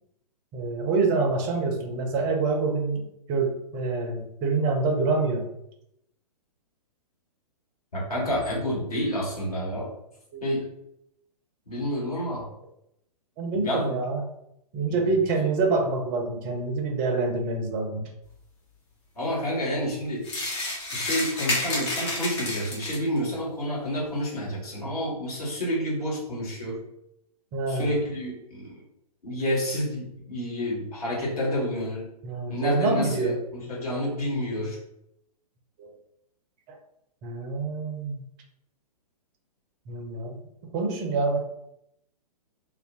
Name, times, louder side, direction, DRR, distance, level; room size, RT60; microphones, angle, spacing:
voice 1, 0.5-5.5 10.3-10.4 13.4-14.3 14.7-18.0 27.5-28.0 32.2-33.4 35.8-35.9 36.7-36.8 37.2-38.3 39.9-40.4 40.7-41.4, right 3 dB, 20° right, 3 dB, 0.4 m, -26 dB
voice 2, 7.9-9.9 10.4-10.7 11.7-12.5 13.6-14.0 14.9-15.0 19.2-20.3 20.9-26.8 27.7-28.8 29.2-32.1 32.5-33.4 33.7-34.8, equal, 70° left, -4 dB, 1.4 m, -29 dB
sound 1, 20.2-23.2, left 2 dB, 45° left, 1.0 m, -30 dB
2.4 x 2.1 x 3.6 m, 0.79 s
figure-of-eight pair, 115°, 20 cm